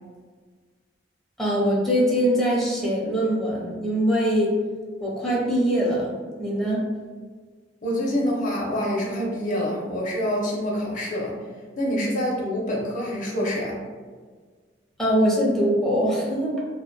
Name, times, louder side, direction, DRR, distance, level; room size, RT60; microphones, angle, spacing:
voice 1, 1.4-4.5 5.0-6.1 6.4-6.8 15.0-16.6, equal, ahead, -6 dB, 0.6 m, -22 dB
voice 2, 7.8-11.3 11.8-13.8, equal, 45° left, -3 dB, 0.7 m, -26 dB
2.9 x 2.1 x 2.2 m, 1.5 s
head